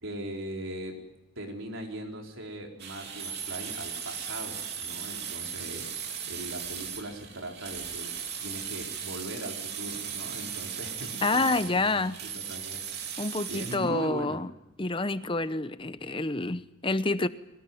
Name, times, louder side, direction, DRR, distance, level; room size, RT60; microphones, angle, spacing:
voice 1, 0.0-1.0 1.4-14.4, right 1 dB, 75° right, 1 dB, 4.4 m, -40 dB
sound 1, 2.8-13.8, right 8 dB, 50° right, 3.0 m, -37 dB
voice 2, 11.2-12.2 13.2-14.5 14.8-17.3, left 2 dB, 25° left, 13 dB, 0.8 m, -28 dB
22.5 x 19.0 x 9.4 m, 0.95 s
head